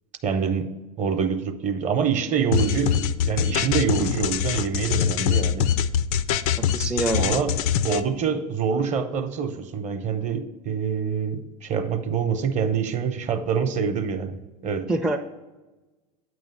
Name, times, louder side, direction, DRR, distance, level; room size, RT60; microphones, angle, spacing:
voice 1, 0.2-5.7 7.2-7.5 7.8-14.9, right 6 dB, 35° right, 7 dB, 0.8 m, -26 dB
sound 1, 2.5-8.0, left 9 dB, 65° left, 0.4 m, -23 dB
voice 2, 6.6-7.2 14.9-15.2, right 2 dB, 5° right, 2 dB, 0.4 m, -25 dB
8.8 x 3.1 x 5.7 m, 1.2 s
hypercardioid pair, 90°, 20 cm